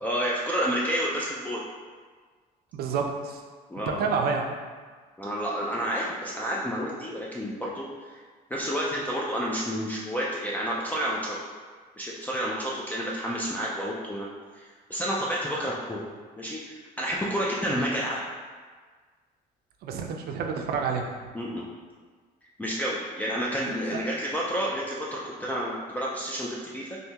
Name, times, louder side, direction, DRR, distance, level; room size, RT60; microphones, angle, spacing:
voice 1, 0.0-1.6 3.7-4.0 5.2-8.1 8.5-11.4 12.0-16.0 16.4-18.3 21.3-21.6 22.6-27.0, equal, 10° left, -5 dB, 0.4 m, -30 dB
voice 2, 2.7-3.4 3.9-4.5 17.7-17.8 19.8-21.1 23.9-24.0, right 5 dB, 65° right, 3 dB, 0.5 m, -28 dB
3.3 x 2.7 x 2.8 m, 1.5 s
cardioid pair, 110°, 17 cm